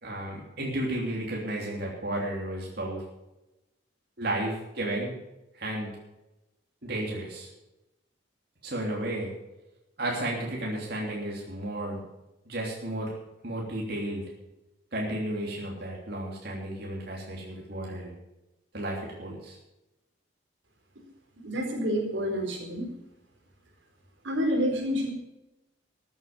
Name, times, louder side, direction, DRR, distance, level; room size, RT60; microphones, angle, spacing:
voice 1, 0.0-3.0 4.2-5.1 5.5-5.9 6.8-7.5 8.6-9.3 10.0-12.0 12.4-13.1 13.4-14.2 14.9-18.1 18.7-19.6, right 1 dB, 60° right, -3 dB, 3.2 m, -33 dB
voice 2, 21.4-22.9 24.2-25.1, equal, 90° right, 1 dB, 4.3 m, -28 dB
14.0 x 9.2 x 7.2 m, 0.94 s
head